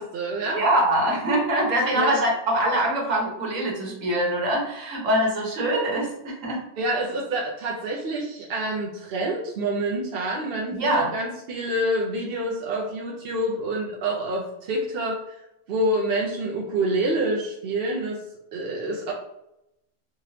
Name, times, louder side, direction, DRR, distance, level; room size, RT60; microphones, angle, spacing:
voice 1, 0.0-0.6 1.9-2.2 6.8-15.2 15.7-18.2 18.5-19.1, right 1 dB, 55° right, -2 dB, 0.8 m, -27 dB
voice 2, 0.6-6.6 10.7-11.1, right 1 dB, 80° right, -1 dB, 1.5 m, -23 dB
3.6 x 3.4 x 2.8 m, 0.84 s
omnidirectional pair, 1.3 m